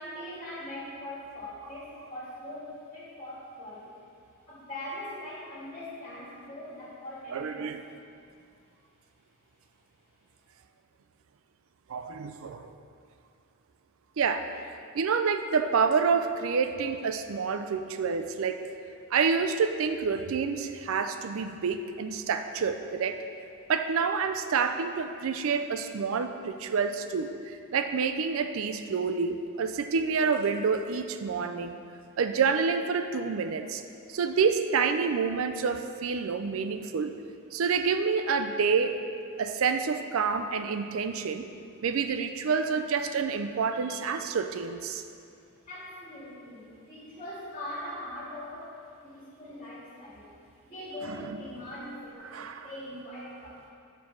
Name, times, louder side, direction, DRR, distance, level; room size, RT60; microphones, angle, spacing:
voice 1, 0.0-3.9 4.5-7.7 21.5-21.6 45.7-50.4 50.7-53.7, left 1 dB, 25° left, -9 dB, 2.0 m, -41 dB
voice 2, 7.3-7.8 11.9-12.7 14.2-18.6 19.1-23.2 23.7-31.8 32.2-33.8 34.1-37.2 37.5-39.1 39.4-41.5 41.8-45.0 51.0-51.4 52.3-52.7, right 5 dB, 65° right, 8 dB, 0.4 m, -28 dB
7.1 x 4.6 x 6.1 m, 2.4 s
head